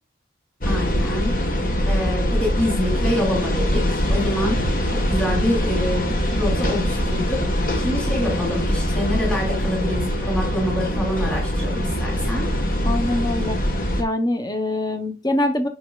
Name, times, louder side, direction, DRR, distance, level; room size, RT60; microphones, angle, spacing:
sound 1, 0.6-14.0, equal, 45° left, 1.2 m, -23 dB
voice 1, 0.6-1.4 1.9-7.5 7.8-12.5, equal, 5° left, -3 dB, 2.5 m, -26 dB
voice 2, 12.8-13.6 14.0-15.7, left 1 dB, 20° left, 6 dB, 0.7 m, -23 dB
8.2 x 5.5 x 2.2 m, 0.29 s
head